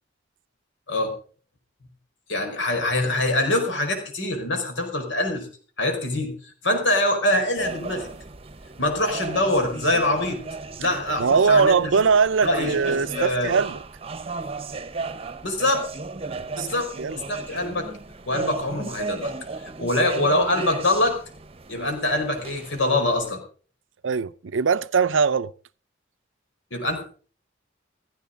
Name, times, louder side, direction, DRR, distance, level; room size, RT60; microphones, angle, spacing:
voice 1, 2.3-5.5 5.8-8.1 8.8-10.4 10.8-11.8 12.4-13.5 15.4-15.8 16.5-16.9 17.3-17.9 18.2-19.3 19.6-21.2 21.7-23.4 26.7-27.1, left 1 dB, 75° left, 4.9 m, -24 dB
sound 1, 7.6-23.3, right 3 dB, 30° right, 0.9 m, -35 dB
voice 2, 11.2-13.8 16.6-17.2 21.7-21.9 24.0-25.5, right 5 dB, 85° right, 0.6 m, -21 dB
16.0 x 15.5 x 3.8 m
head